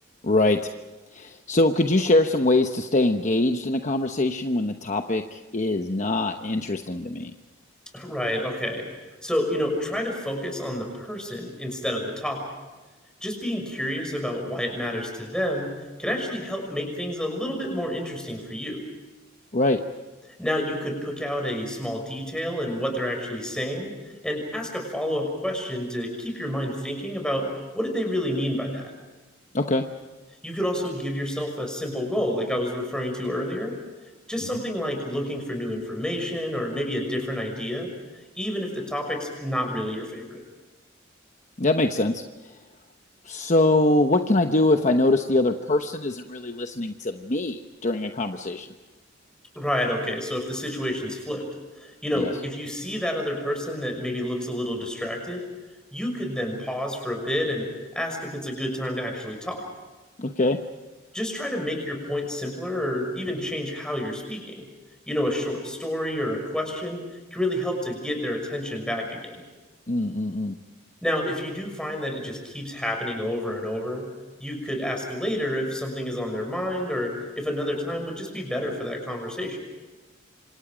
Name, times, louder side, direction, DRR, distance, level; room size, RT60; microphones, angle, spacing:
voice 1, 0.2-0.6 1.1-7.3 19.5-19.8 29.5-29.8 41.6-42.2 43.2-48.7 52.2-52.3 60.2-60.6 69.9-70.5, left 2 dB, 35° left, 5 dB, 1.0 m, -23 dB
voice 2, 7.9-8.9 9.2-12.5 13.2-15.7 16.0-18.8 20.4-23.9 24.2-27.5 27.7-28.9 30.4-33.7 34.3-37.9 38.3-40.4 49.5-51.4 51.8-55.4 55.9-59.7 61.1-64.7 65.1-67.0 67.3-69.4 71.0-74.1 74.4-79.6, equal, 5° left, 2 dB, 6.1 m, -29 dB
27.5 x 26.5 x 5.1 m, 1.2 s
head